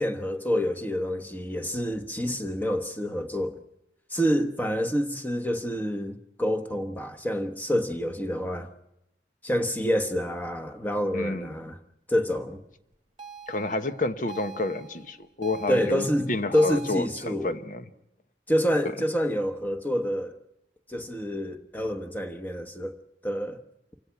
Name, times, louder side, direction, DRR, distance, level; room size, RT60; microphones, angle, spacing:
voice 1, 0.0-3.6 4.1-8.7 9.4-11.8 12.1-12.6 15.7-17.5 18.5-20.4 20.9-23.0 23.2-23.6, equal, 10° left, 1.2 m, -27 dB
voice 2, 11.1-11.5 13.5-17.8, left 2 dB, 45° left, 1.1 m, -30 dB
sound 1, 13.2-17.1, right 6 dB, 25° right, 1.3 m, -44 dB
28.5 x 16.5 x 5.9 m
head